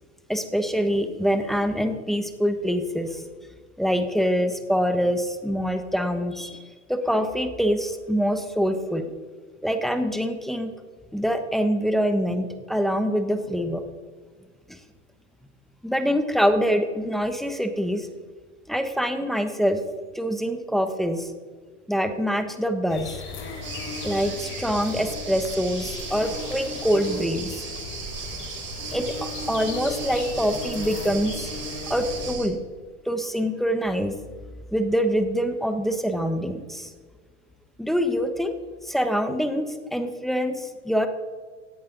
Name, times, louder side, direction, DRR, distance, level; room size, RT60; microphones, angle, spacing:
voice 1, 0.3-3.2 3.8-9.1 9.6-10.7 11.1-13.8 14.7-14.8 15.8-18.1 18.7-19.8 20.1-21.3 21.9-23.2 24.0-27.7 28.9-31.5 31.9-32.6 33.0-34.2 34.7-36.9 37.8-38.5 38.8-41.1, equal, ahead, 7 dB, 1.2 m, -25 dB
sound 1, 22.9-32.3, left 4 dB, 35° left, 3.3 m, -36 dB
sound 2, 23.6-32.5, right 6 dB, 30° right, 2.9 m, -37 dB
17.0 x 11.0 x 4.0 m, 1.5 s
hypercardioid pair, 120°, 36 cm